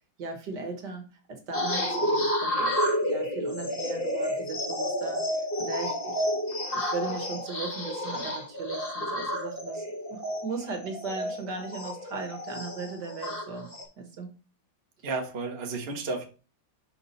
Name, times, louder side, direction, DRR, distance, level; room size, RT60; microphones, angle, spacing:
voice 1, 0.2-2.8 3.1-5.2 5.6-6.2 6.7-9.9 10.1-13.7 14.0-14.3, right 4 dB, 60° right, 4 dB, 1.9 m, -37 dB
sound 1, 1.5-13.8, equal, 30° left, 2.1 m, -30 dB
voice 2, 15.0-16.3, right 3 dB, 35° right, 2 dB, 1.3 m, -32 dB
5.9 x 5.9 x 4.0 m, 0.35 s
omnidirectional pair, 2.1 m